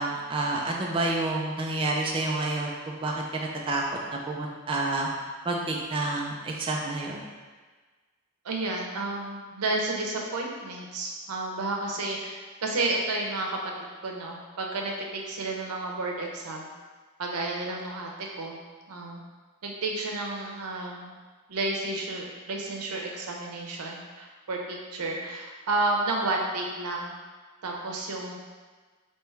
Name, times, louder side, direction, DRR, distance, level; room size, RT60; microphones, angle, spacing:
voice 1, 0.0-3.8 4.1-5.1 5.4-7.2, right 2 dB, 25° right, -1 dB, 0.4 m, -29 dB
voice 2, 8.4-13.6 14.0-16.7 17.2-18.6 18.9-19.2 19.6-21.1 21.5-27.1 27.6-28.4, right 2 dB, 90° right, 0 dB, 0.7 m, -31 dB
3.3 x 3.0 x 4.6 m, 1.4 s
head